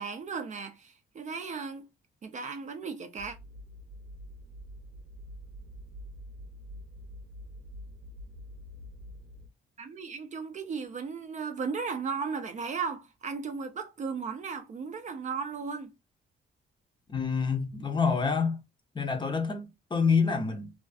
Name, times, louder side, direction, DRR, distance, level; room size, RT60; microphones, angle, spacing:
voice 1, 0.0-1.9 2.2-3.4 9.8-15.9, right 5 dB, 40° right, 0.4 m, -36 dB
sound 1, 3.2-9.5, equal, 65° right, 0.7 m, -46 dB
voice 2, 17.1-18.6 18.9-20.7, left 5 dB, 25° left, 0.6 m, -27 dB
2.4 x 2.3 x 2.3 m
cardioid pair, 90°, 20 cm